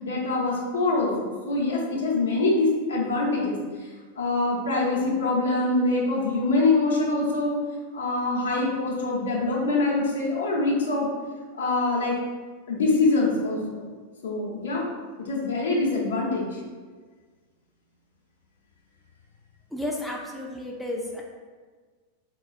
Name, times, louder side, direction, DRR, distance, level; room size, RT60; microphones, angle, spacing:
voice 1, 0.0-3.9 4.2-7.6 7.9-11.1 11.5-12.2 12.7-13.8 14.2-14.8 15.3-16.6, left 2 dB, 65° left, -3 dB, 0.7 m, -24 dB
voice 2, 19.7-21.2, left 1 dB, 5° left, -1 dB, 0.3 m, -32 dB
4.0 x 2.3 x 2.4 m, 1.5 s
figure-of-eight pair, 90°, 0 cm